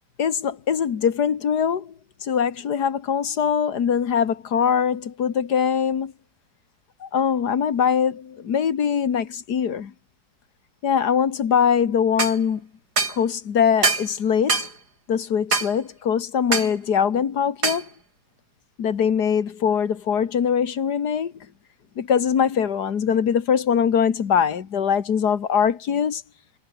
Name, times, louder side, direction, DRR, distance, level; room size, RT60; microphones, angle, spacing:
voice 1, 0.2-1.9 2.2-6.1 7.0-9.9 10.8-12.6 13.1-14.7 15.1-17.9 18.8-21.3 22.0-26.2, left 7 dB, 90° left, 2.1 m, -22 dB
sound 1, 12.2-12.4 13.0-13.2 13.8-14.1 14.5-14.7 15.5-15.7 16.5-16.7 17.6-17.8, right 4 dB, 85° right, 3.9 m, -22 dB
omnidirectional pair, 1.7 m